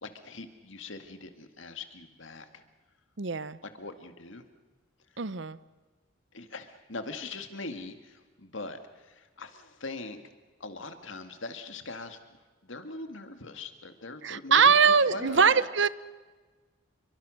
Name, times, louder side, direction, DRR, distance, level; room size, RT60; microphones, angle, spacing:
voice 1, 0.0-2.5 3.6-4.5 6.3-10.2 10.6-12.2 12.6-14.6 15.1-15.6, left 3 dB, 65° left, 8 dB, 2.1 m, -41 dB
voice 2, 3.2-3.6 5.2-5.6 14.2-15.9, right 6 dB, 55° right, 17 dB, 0.7 m, -22 dB
28.0 x 23.5 x 6.5 m, 1.3 s
head